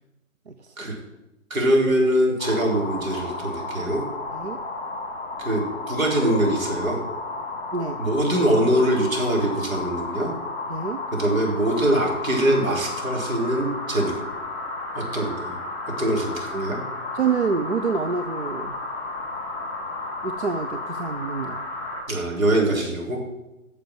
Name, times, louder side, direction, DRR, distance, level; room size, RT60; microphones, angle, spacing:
voice 1, 1.5-4.0 5.4-5.6 5.9-7.0 8.0-10.3 11.1-14.2 14.9-15.5 16.0-16.8 22.1-23.2, right 1 dB, 70° right, -2 dB, 4.3 m, -23 dB
sound 1, 2.4-22.0, left 3 dB, 25° left, 4.2 m, -33 dB
voice 2, 10.7-11.0 16.5-16.8 17.1-18.8 20.2-21.6 23.1-23.2, right 5 dB, 50° right, 7 dB, 0.7 m, -27 dB
10.0 x 6.7 x 7.6 m, 0.96 s
figure-of-eight pair, 150°, 42 cm